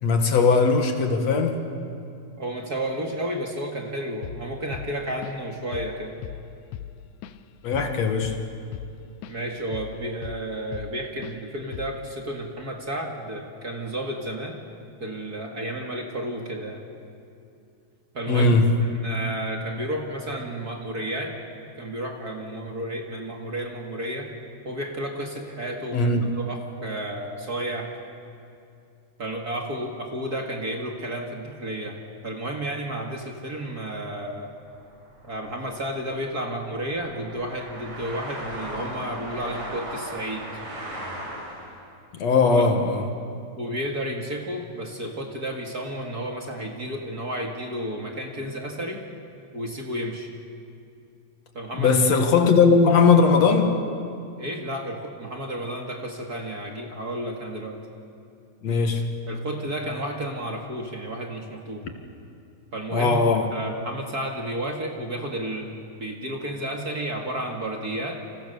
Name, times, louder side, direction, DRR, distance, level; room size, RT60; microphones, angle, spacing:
voice 1, 0.0-1.7 7.6-8.5 18.3-19.0 25.9-26.3 42.1-43.1 51.7-53.8 58.6-59.3 62.9-63.5, left 4 dB, 65° left, 5 dB, 2.9 m, -19 dB
voice 2, 2.4-6.2 9.3-14.6 15.0-16.8 18.1-21.3 21.8-24.3 24.6-27.9 29.2-34.5 35.2-40.5 42.5-42.7 43.5-49.0 49.5-50.3 51.5-52.0 54.4-57.8 59.3-61.8 62.7-68.2, right 1 dB, 35° right, 2 dB, 2.3 m, -32 dB
Drum kit / Drum, 4.2-4.5 4.7-5.5 5.7-6.0 6.2-9.4 9.7-11.0 11.2-11.4 11.7-12.1, left 11 dB, 85° left, 2.2 m, -38 dB
sound 1, 34.6-41.8, right 1 dB, 75° right, 7.3 m, -38 dB
29.5 x 27.5 x 6.9 m, 2.5 s
omnidirectional pair, 3.3 m